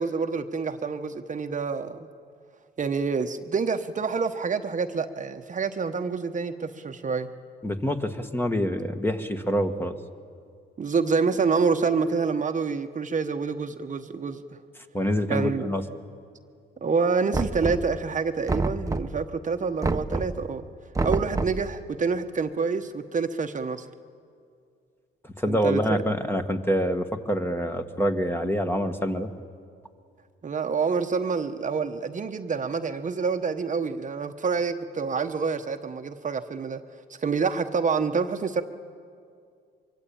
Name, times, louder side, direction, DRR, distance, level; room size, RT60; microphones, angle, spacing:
voice 1, 0.0-2.1 2.8-7.3 10.8-14.6 15.3-15.6 16.8-20.7 21.0-23.9 25.5-26.0 30.4-36.8 37.2-38.6, right 5 dB, 40° right, 7 dB, 1.1 m, -27 dB
voice 2, 7.6-9.9 14.9-15.8 25.2-29.3, equal, 10° left, 6 dB, 1.6 m, -26 dB
Knock, 17.3-18.1 18.5-19.3 19.8-20.4 20.9-21.7, right 2 dB, 15° right, 1.0 m, -28 dB
24.0 x 23.5 x 8.7 m, 2.3 s
cardioid pair, 90°, 20 cm